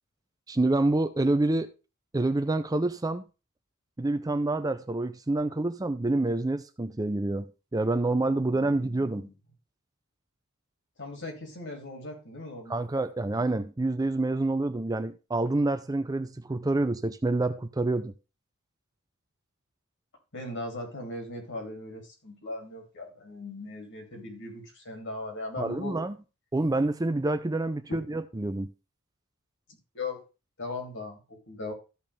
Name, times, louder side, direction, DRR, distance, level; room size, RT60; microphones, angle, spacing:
voice 1, 0.5-1.7 2.1-3.2 4.0-9.3 12.7-18.1 25.6-26.2 26.5-28.7, right 2 dB, 15° right, 0.5 m, -27 dB
voice 2, 8.2-9.3 11.0-12.8 20.3-26.0 27.9-28.0 29.9-30.2 30.6-31.7, left 2 dB, 60° left, 3.0 m, -39 dB
14.0 x 5.4 x 3.4 m
head